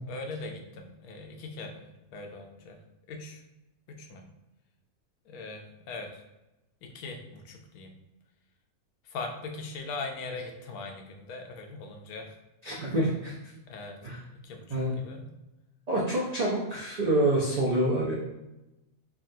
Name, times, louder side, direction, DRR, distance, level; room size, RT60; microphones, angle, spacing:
voice 1, 0.1-2.8 3.1-3.4 3.9-4.3 5.3-6.2 6.8-7.9 9.0-12.4 12.6-12.9 13.7-14.0 14.4-15.3, left 3 dB, 90° left, 3 dB, 1.1 m, -40 dB
voice 2, 12.6-13.3 14.0-14.2 14.7-14.9 15.9-18.1, right 1 dB, 75° right, -6 dB, 0.3 m, -27 dB
3.4 x 2.3 x 2.6 m, 0.97 s
omnidirectional pair, 1.5 m